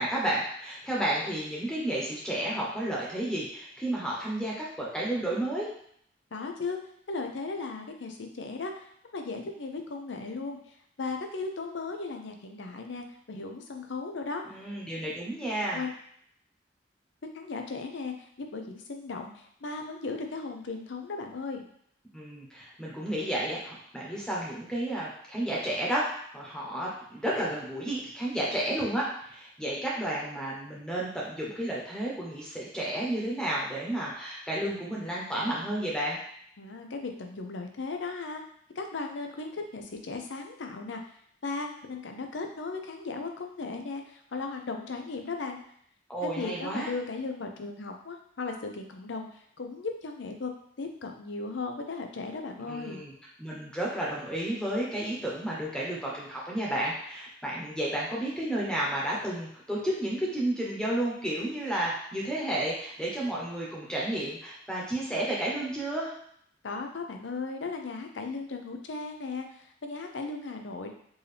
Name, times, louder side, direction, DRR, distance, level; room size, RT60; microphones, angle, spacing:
voice 1, 0.0-5.7 14.5-15.8 22.1-36.2 46.1-46.9 52.7-53.1 53.4-66.1, right 1 dB, 5° left, -5 dB, 1.0 m, -32 dB
voice 2, 6.3-6.8 7.1-14.4 15.6-15.9 17.3-21.6 36.6-38.4 38.8-41.0 41.4-45.6 46.2-50.5 50.8-53.0 66.6-70.9, left 3 dB, 75° left, 4 dB, 0.6 m, -36 dB
4.6 x 2.8 x 3.4 m, 0.66 s
head